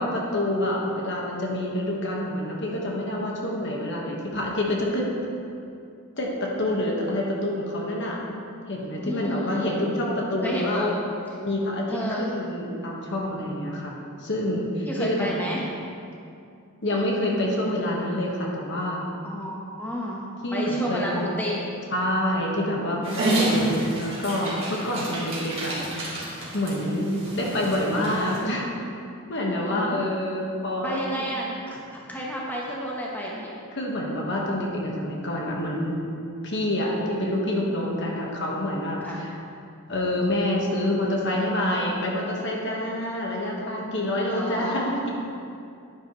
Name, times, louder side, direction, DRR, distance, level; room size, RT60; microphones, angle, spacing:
voice 1, 0.0-5.1 6.2-8.2 8.7-10.9 11.4-13.9 14.2-15.4 16.8-19.1 20.4-21.3 21.9-26.1 26.5-28.7 29.3-31.3 33.7-36.0 36.4-39.3 39.9-45.1, left 1 dB, 55° left, -2 dB, 1.4 m, -27 dB
voice 2, 9.0-9.8 10.4-10.9 11.9-12.3 14.9-15.6 19.2-20.2 20.5-21.6 29.3-30.1 30.8-31.8 32.1-33.5 39.0-39.2 44.2-44.9, equal, 10° left, -4 dB, 1.0 m, -31 dB
Dog, 23.0-28.4, right 1 dB, 25° right, 2.4 m, -29 dB
10.5 x 9.9 x 3.1 m, 2.5 s
head